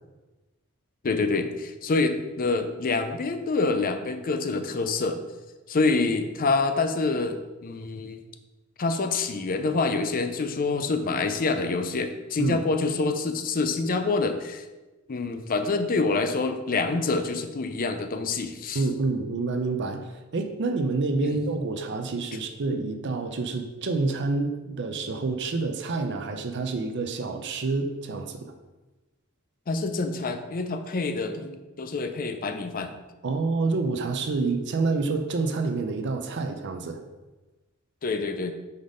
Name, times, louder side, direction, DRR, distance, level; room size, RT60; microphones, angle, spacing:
voice 1, 1.0-5.2 5.7-8.2 8.8-14.6 15.1-18.8 21.2-21.4 29.7-32.9 38.0-38.5, left 3 dB, 40° left, 8 dB, 0.5 m, -26 dB
voice 2, 18.7-28.5 33.2-37.0, right 3 dB, 55° right, 6 dB, 0.5 m, -28 dB
5.4 x 4.0 x 5.0 m, 1.1 s
head